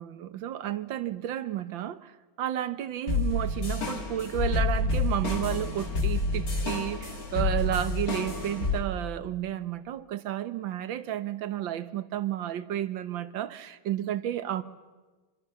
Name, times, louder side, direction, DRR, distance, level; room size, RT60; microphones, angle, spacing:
voice 1, 0.0-2.1 2.4-14.6, right 11 dB, 75° right, 1.7 m, -32 dB
sound 1, 3.1-8.8, left 2 dB, 45° left, 3.1 m, -29 dB
27.5 x 25.0 x 7.0 m
omnidirectional pair, 2.2 m